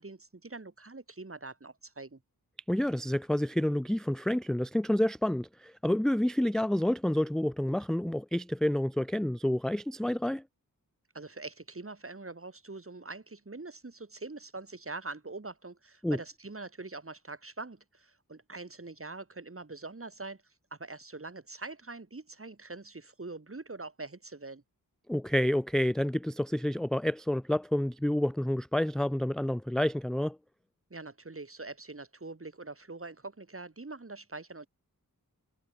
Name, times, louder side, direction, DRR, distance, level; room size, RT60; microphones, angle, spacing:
voice 1, 0.0-2.2 11.1-24.6 30.9-34.7, right 3 dB, 40° right, 5.1 m, -44 dB
voice 2, 2.7-10.4 16.0-16.2 25.1-30.4, left 1 dB, ahead, 0.5 m, -29 dB
wide cardioid pair, 90°, 36 cm